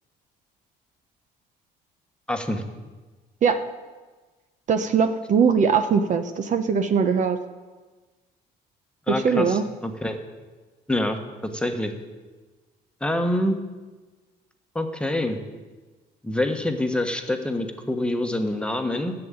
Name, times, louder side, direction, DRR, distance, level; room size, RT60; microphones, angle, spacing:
voice 1, 2.3-2.6 9.1-10.2 10.9-11.9 13.0-13.6 14.7-15.4 16.2-19.1, left 1 dB, 5° left, 5 dB, 1.2 m, -26 dB
voice 2, 4.7-7.4 9.1-9.6, right 6 dB, 45° right, 8 dB, 0.8 m, -21 dB
11.0 x 7.9 x 8.8 m, 1.3 s
cardioid pair, 110°, 17 cm